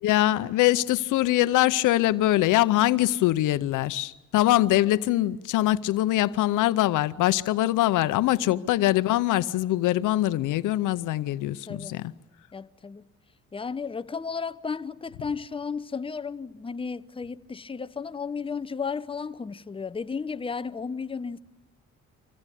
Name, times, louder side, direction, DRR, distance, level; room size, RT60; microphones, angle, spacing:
voice 1, 0.0-12.1, left 15 dB, 85° left, 0.7 m, -23 dB
voice 2, 8.5-8.8 11.7-12.1 12.5-13.1 13.5-21.4, left 5 dB, 20° left, 0.7 m, -34 dB
26.0 x 16.0 x 9.9 m
cardioid pair, 90°, 30 cm